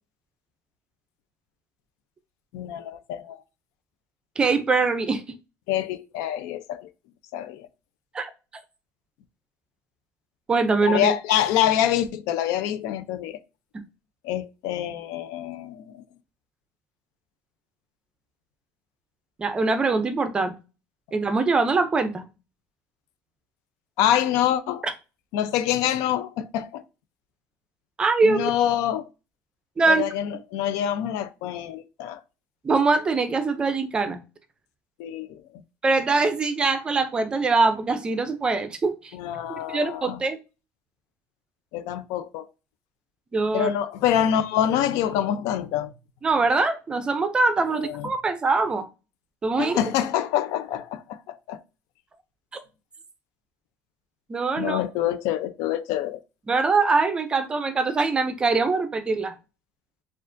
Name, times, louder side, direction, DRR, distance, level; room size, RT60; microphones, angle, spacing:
voice 1, 2.5-3.4 5.7-6.9 7.3-7.7 10.9-13.4 14.2-16.0 24.0-24.8 25.3-26.8 28.2-29.1 29.9-32.2 35.0-35.4 39.1-40.2 41.7-42.5 43.5-45.9 47.8-48.1 49.6-51.6 54.6-56.2, left 11 dB, 85° left, 0.5 m, -26 dB
voice 2, 4.4-5.2 8.1-8.3 10.5-11.1 13.7-13.8 19.4-20.6 21.1-22.3 24.8-24.9 28.0-28.5 29.8-30.0 32.6-34.2 35.8-39.1 39.5-40.4 43.3-43.7 46.2-48.9 49.4-49.8 52.5-52.6 54.3-54.8 56.5-59.3, right 3 dB, 15° right, 0.5 m, -23 dB
6.5 x 2.4 x 2.6 m
cardioid pair, 175°, 6 cm